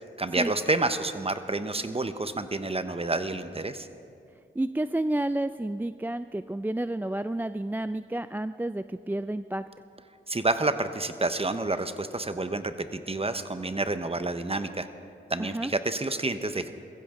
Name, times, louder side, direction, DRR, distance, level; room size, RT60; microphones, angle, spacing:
voice 1, 0.2-3.9 10.3-14.9 15.3-16.7, right 2 dB, 30° right, 10 dB, 0.9 m, -29 dB
voice 2, 4.6-9.6 15.4-15.7, right 1 dB, 10° right, 12 dB, 0.3 m, -30 dB
21.5 x 15.0 x 3.8 m, 2.5 s
cardioid pair, 45°, 21 cm